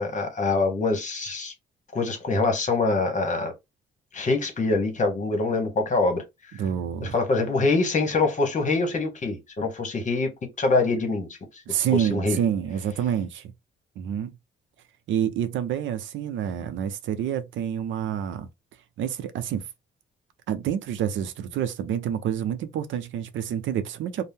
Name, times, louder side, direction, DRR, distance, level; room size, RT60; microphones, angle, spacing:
voice 1, 0.0-1.5 1.9-3.5 4.1-6.2 7.0-10.3 10.6-11.3 12.0-12.4, left 3 dB, 40° left, 1.1 m, -24 dB
voice 2, 6.6-7.2 11.7-13.5 14.0-14.3 15.1-18.5 19.0-19.6 20.5-24.3, right 9 dB, 75° right, 0.5 m, -28 dB
2.6 x 2.1 x 3.4 m
cardioid pair, 90°, 20 cm